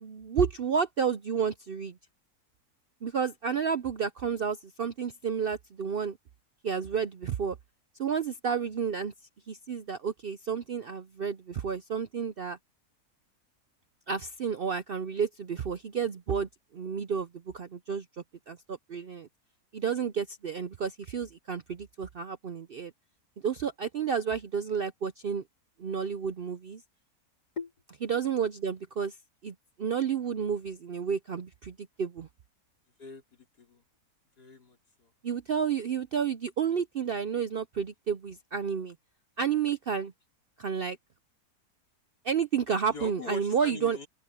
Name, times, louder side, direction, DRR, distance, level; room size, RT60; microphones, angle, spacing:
voice 1, 0.0-1.9 3.0-6.2 6.6-7.5 8.0-9.1 9.5-12.6 14.1-17.3 17.5-18.0 18.5-19.3 19.7-22.9 23.4-25.4 25.8-26.8 28.1-29.1 29.4-32.3 35.2-38.9 39.4-40.1 40.6-41.0 42.2-44.0, right 6 dB, 60° right, 0.6 m, -31 dB
voice 2, 33.0-33.8 34.4-35.1 42.9-44.1, left 4 dB, 85° left, 5.0 m, -42 dB
open air
omnidirectional pair, 1.7 m